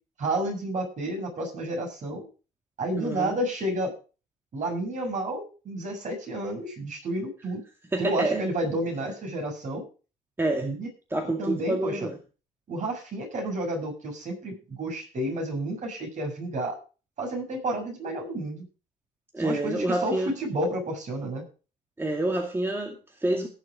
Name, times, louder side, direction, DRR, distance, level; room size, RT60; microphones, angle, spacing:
voice 1, 0.2-2.3 2.8-3.9 4.5-7.6 8.0-9.8 10.6-10.9 11.2-12.1 12.7-16.8 17.2-18.6 19.4-21.4, right 1 dB, 45° right, 1 dB, 7.0 m, -31 dB
voice 2, 3.0-3.4 7.9-8.4 10.4-10.7 11.1-12.2 19.3-20.3 22.0-23.5, right 1 dB, 15° right, 2 dB, 2.3 m, -27 dB
17.5 x 7.2 x 5.1 m, 0.35 s
cardioid pair, 110°, 17 cm